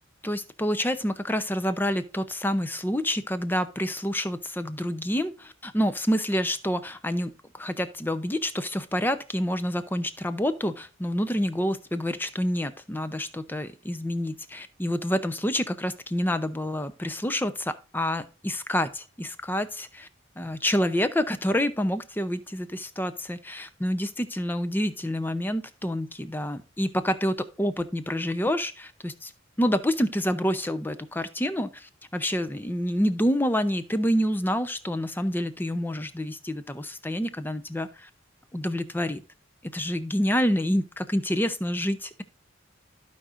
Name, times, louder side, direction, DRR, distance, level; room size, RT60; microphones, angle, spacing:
voice 1, 0.2-20.1 20.4-29.3 29.6-38.1 38.5-39.2 39.6-42.2, equal, 10° left, 12 dB, 0.6 m, -28 dB
15.0 x 5.0 x 2.5 m, 0.35 s
head